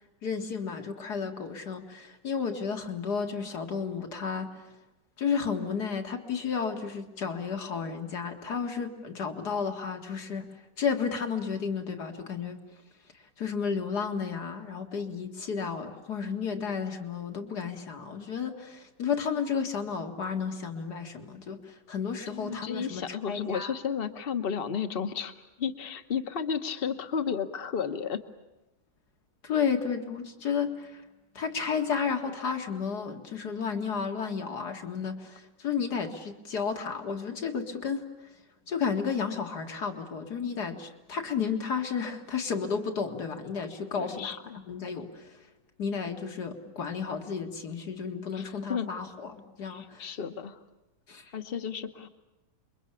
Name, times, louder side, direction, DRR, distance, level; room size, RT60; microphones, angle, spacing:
voice 1, 0.2-4.5 5.2-10.5 10.8-12.6 13.4-23.7 29.4-31.0 31.4-38.0 38.7-44.4 44.7-45.3 45.8-50.1 51.1-51.2, left 6 dB, 65° left, 5 dB, 2.5 m, -32 dB
voice 2, 22.3-28.2 43.9-44.6 48.3-48.9 49.6-50.6 51.3-52.1, left 7 dB, 35° left, 9 dB, 1.3 m, -33 dB
27.5 x 23.0 x 8.4 m, 0.98 s
omnidirectional pair, 1.8 m